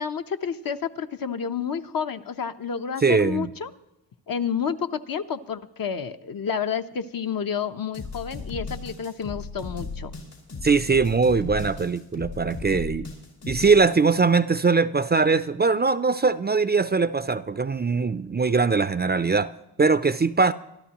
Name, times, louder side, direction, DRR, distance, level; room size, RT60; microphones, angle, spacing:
voice 1, 0.0-3.7 4.3-10.2, left 7 dB, 55° left, 7 dB, 0.9 m, -30 dB
voice 2, 3.0-3.5 10.6-13.1 13.5-19.5 19.8-20.5, right 4 dB, 25° right, 13 dB, 0.5 m, -21 dB
sound 1, 7.9-13.8, left 4 dB, 80° left, 5.5 m, -36 dB
24.5 x 12.5 x 3.0 m, 0.90 s
cardioid pair, 75°, 40 cm